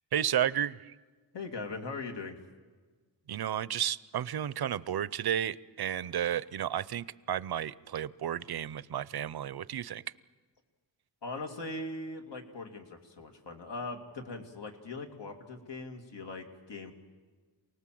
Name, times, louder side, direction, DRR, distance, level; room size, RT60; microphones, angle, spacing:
voice 1, 0.1-0.9 3.3-10.0, right 10 dB, 60° right, 19 dB, 0.6 m, -32 dB
voice 2, 1.3-2.4 11.2-16.9, left 3 dB, 75° left, 4 dB, 2.6 m, -40 dB
28.0 x 19.0 x 7.6 m, 1.4 s
wide cardioid pair, 145°, 43 cm